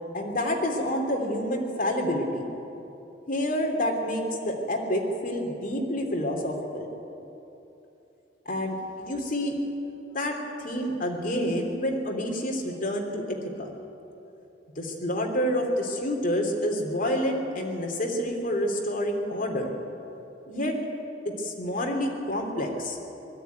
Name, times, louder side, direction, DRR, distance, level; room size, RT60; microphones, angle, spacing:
voice 1, 0.1-2.5 3.3-6.9 8.4-9.6 10.1-13.7 14.8-19.7 20.5-20.8 21.4-23.0, equal, 50° left, 1 dB, 3.0 m, -28 dB
20.0 x 13.5 x 9.4 m, 2.9 s
head